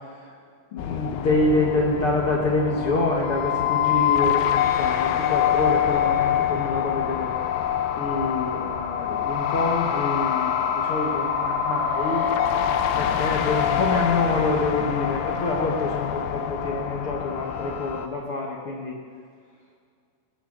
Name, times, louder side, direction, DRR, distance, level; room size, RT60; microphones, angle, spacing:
voice 1, 0.7-7.3 8.0-12.6 13.0-19.0, left 2 dB, 55° left, -2 dB, 1.7 m, -26 dB
sound 1, 0.8-18.1, left 9 dB, 80° left, 2.5 m, -25 dB
20.5 x 15.0 x 3.9 m, 2.2 s
omnidirectional pair, 4.2 m